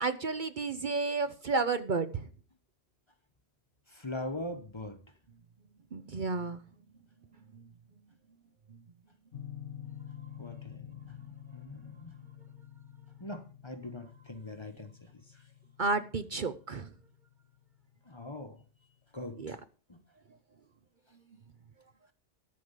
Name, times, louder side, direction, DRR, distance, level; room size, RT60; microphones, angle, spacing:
voice 1, 0.0-2.3 5.9-6.6 7.5-7.6 15.8-16.9 19.4-19.6, right 4 dB, 50° right, 0.8 m, -32 dB
voice 2, 3.9-5.0 10.4-11.2 11.5-12.1 13.2-14.9 18.1-18.6 19.1-19.6 19.9-20.0, left 1 dB, 25° left, 1.0 m, -41 dB
sound 1, 9.3-18.0, left 10 dB, 55° left, 1.2 m, -49 dB
13.5 x 5.0 x 8.2 m
omnidirectional pair, 1.2 m